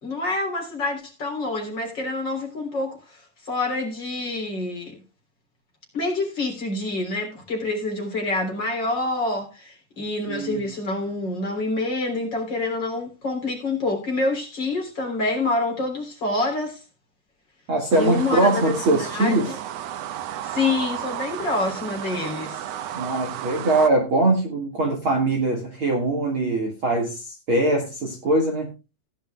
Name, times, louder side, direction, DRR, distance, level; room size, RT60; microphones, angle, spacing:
voice 1, 0.0-5.0 5.9-16.8 17.9-19.6 20.4-22.6, left 2 dB, 30° left, 3.9 m, -27 dB
voice 2, 10.3-10.7 17.7-19.5 22.9-28.7, right 2 dB, 45° right, 2.2 m, -22 dB
sound 1, 17.9-23.9, right 11 dB, 90° right, 1.4 m, -33 dB
17.0 x 10.5 x 2.2 m
omnidirectional pair, 4.0 m